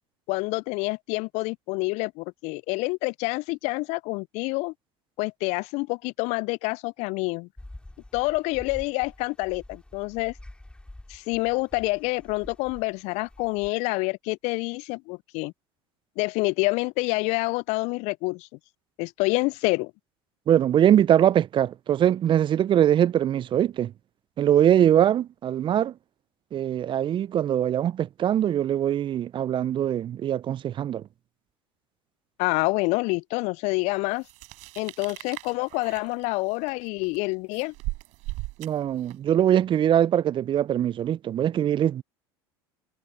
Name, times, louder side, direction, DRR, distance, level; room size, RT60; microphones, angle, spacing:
voice 1, 0.3-4.7 5.2-7.5 8.1-10.3 11.1-15.5 16.2-18.5 19.0-19.9 32.4-34.3 34.8-37.7, left 26 dB, 55° left, 0.5 m, -27 dB
sound 1, 7.6-13.7, left 1 dB, 5° left, 4.8 m, -47 dB
voice 2, 20.5-23.9 24.4-25.9 26.5-31.0 38.6-42.0, right 10 dB, 35° right, 0.7 m, -22 dB
sound 2, 34.2-39.3, right 22 dB, 60° right, 7.3 m, -38 dB
figure-of-eight pair, 70°, 14 cm